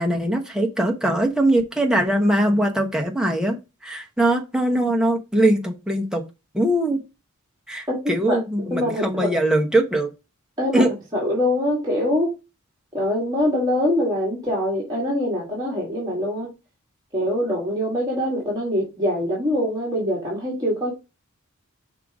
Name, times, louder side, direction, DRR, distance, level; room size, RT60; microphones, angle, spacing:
voice 1, 0.0-3.6 3.8-6.2 6.5-7.0 7.7-10.1 10.7-10.9, right 1 dB, 5° right, 1.1 m, -21 dB
voice 2, 8.7-9.3 10.6-10.8 11.1-12.3 12.9-16.5 17.1-20.9, left 1 dB, 20° right, 2.0 m, -23 dB
5.8 x 3.6 x 4.8 m
head